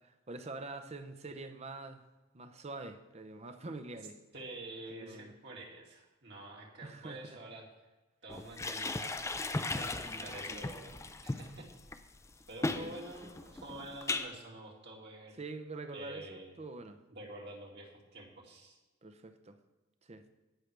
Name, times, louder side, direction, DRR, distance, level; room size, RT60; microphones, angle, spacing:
voice 1, 0.0-2.0 2.3-4.2 4.9-5.3 6.8-7.4 10.0-10.7 12.8-13.0 15.4-17.0 19.0-19.6 20.0-20.3, right 3 dB, 30° right, 0.7 m, -45 dB
voice 2, 4.3-7.7 8.2-10.9 11.2-11.7 12.5-15.4 15.9-16.5 17.1-18.8, right 2 dB, 55° right, 2.3 m, -48 dB
sound 1, 8.3-14.3, left 2 dB, 15° left, 0.4 m, -37 dB
18.0 x 6.4 x 3.4 m
head